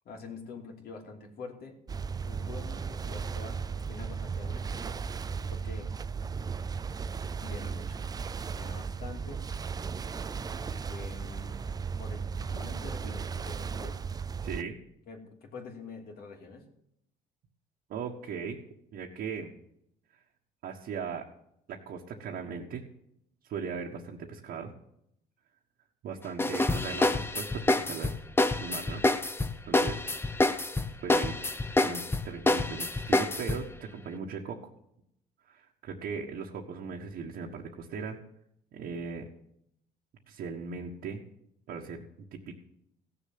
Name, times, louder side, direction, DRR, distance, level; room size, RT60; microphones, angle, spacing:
voice 1, 0.0-1.8 2.2-3.6 3.9-5.0 5.2-5.9 7.4-8.0 8.5-9.8 10.4-11.6 12.0-14.0 15.1-16.6, left 4 dB, 65° left, 2 dB, 3.0 m, -46 dB
sound 1, 1.9-14.6, right 5 dB, 20° right, 0.4 m, -36 dB
voice 2, 14.4-14.8 17.9-18.6 18.9-19.5 20.6-21.3 21.7-22.8 23.4-24.7 26.0-28.1 28.6-29.0 29.7-30.0 30.3-30.4 31.0-31.4 31.8-34.6 35.4-38.2 38.7-39.3 40.3-41.2 41.7-42.1 42.3-42.6, right 6 dB, 65° right, -1 dB, 1.6 m, -38 dB
sound 2, 26.4-33.7, left 2 dB, 15° left, 0.8 m, -27 dB
16.0 x 7.0 x 7.8 m, 0.75 s
cardioid pair, 110°, 17 cm